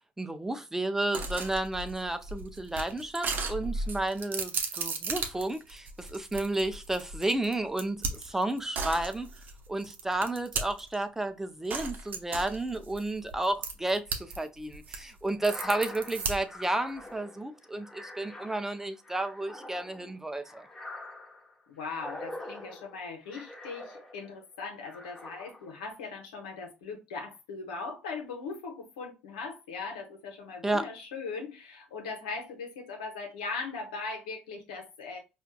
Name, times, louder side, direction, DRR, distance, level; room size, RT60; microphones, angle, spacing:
voice 1, 0.2-9.3 9.7-20.7 30.6-30.9, right 2 dB, 10° right, 0.5 m, -32 dB
sound 1, 1.1-11.0 11.7-14.4 14.7-16.6, right 4 dB, 50° right, 0.8 m, -35 dB
sound 2, 15.3-24.4 24.8-25.9, left 1 dB, 10° left, 1.0 m, -45 dB
voice 2, 21.7-35.2, left 4 dB, 85° left, 1.0 m, -39 dB
4.4 x 2.4 x 2.2 m
hypercardioid pair, 65°, 4 cm